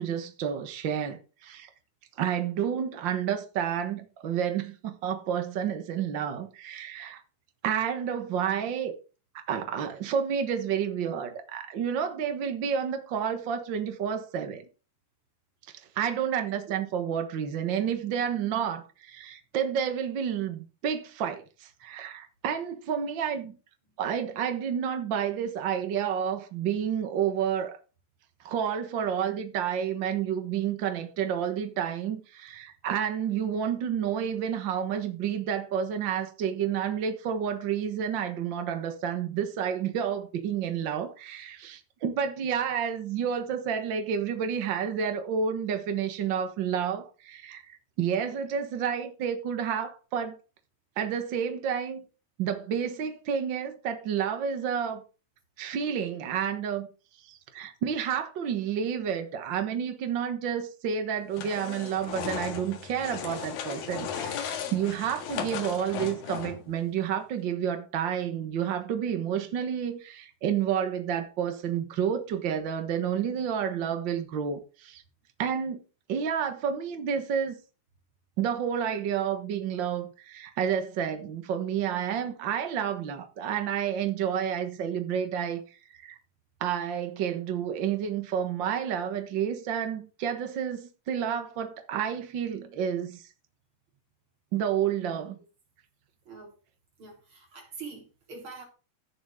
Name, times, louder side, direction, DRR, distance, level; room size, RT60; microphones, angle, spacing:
voice 1, 0.0-1.7 2.2-7.2 7.6-8.9 9.3-14.6 15.9-23.6 24.0-27.8 28.4-50.4 51.0-52.0 52.4-55.0 55.6-56.9 57.2-75.0 75.4-75.8 76.1-77.6 78.4-85.6 85.9-86.1 86.6-93.2 94.5-95.4, right 8 dB, 70° right, 1.1 m, -30 dB
sound 1, 61.3-66.7, left 8 dB, 85° left, 3.3 m, -36 dB
voice 2, 97.0-98.6, right 4 dB, 35° right, 4.3 m, -44 dB
16.0 x 7.2 x 3.6 m
omnidirectional pair, 4.0 m